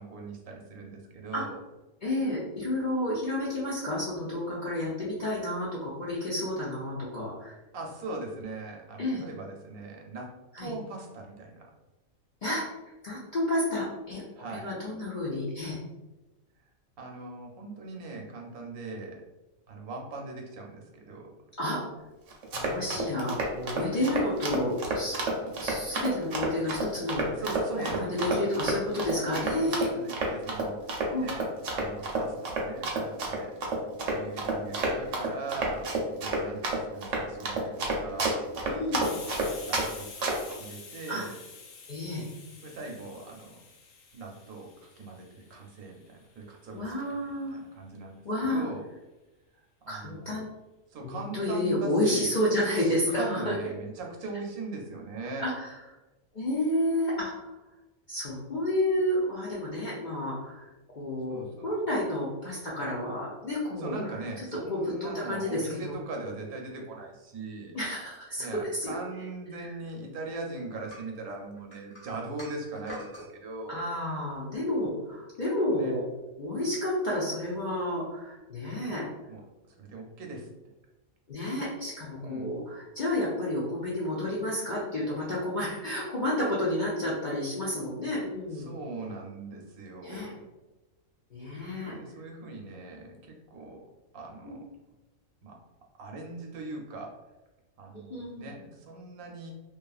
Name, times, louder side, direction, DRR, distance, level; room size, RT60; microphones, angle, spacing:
voice 1, 0.0-1.6 7.7-11.7 14.3-14.7 17.0-19.2 19.7-21.3 22.9-23.1 27.4-28.5 29.2-30.8 31.1-33.5 34.1-35.9 36.2-38.4 38.8-39.1 39.7-41.3 42.6-43.6 44.1-44.7 45.0-48.8 49.5-50.5 50.9-52.3 52.8-55.5 61.3-61.7 63.8-67.7 68.4-73.9 75.7-75.9 79.3-79.4 79.7-80.5 82.2-82.5 88.5-90.4 91.8-93.8 94.1-94.6 95.4-95.6 96.0-97.2 97.8-99.5, right 3 dB, 90° right, 1 dB, 1.1 m, -40 dB
voice 2, 2.0-7.6 9.0-9.2 10.6-10.7 12.4-12.6 13.0-14.2 14.5-15.8 21.6-21.8 22.5-25.3 25.6-27.3 27.8-29.9 31.1-31.3 38.7-39.1 41.1-41.3 41.9-42.2 46.7-47.6 48.2-48.7 49.9-50.5 51.0-53.5 55.4-55.7 56.3-57.3 58.1-60.7 61.0-63.9 64.7-65.9 67.7-69.2 73.7-76.0 76.4-79.0 81.3-88.8 90.0-90.3 91.3-91.9 94.4-94.6 97.9-98.6, left 1 dB, 60° left, -7 dB, 0.5 m, -30 dB
Run, 22.3-39.9 40.2-40.5, right 2 dB, 70° right, 0.9 m, -30 dB
Hiss, 39.0-46.4, left 4 dB, 75° left, 0.9 m, -48 dB
sound 1, 70.9-73.3, equal, 30° left, 0.9 m, -44 dB
2.7 x 2.3 x 2.3 m, 1.1 s
omnidirectional pair, 1.5 m